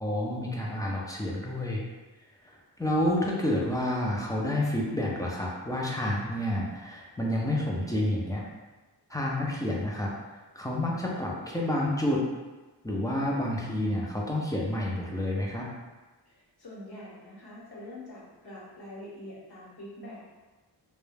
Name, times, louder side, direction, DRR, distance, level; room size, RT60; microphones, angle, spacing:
voice 1, 0.0-1.8 2.4-8.4 9.1-10.1 10.5-12.2 12.8-15.7, left 1 dB, 10° left, -4 dB, 0.4 m, -29 dB
voice 2, 16.3-20.3, left 1 dB, 60° left, -6 dB, 0.9 m, -45 dB
2.2 x 2.1 x 3.1 m, 1.2 s
wide cardioid pair, 105°, 43 cm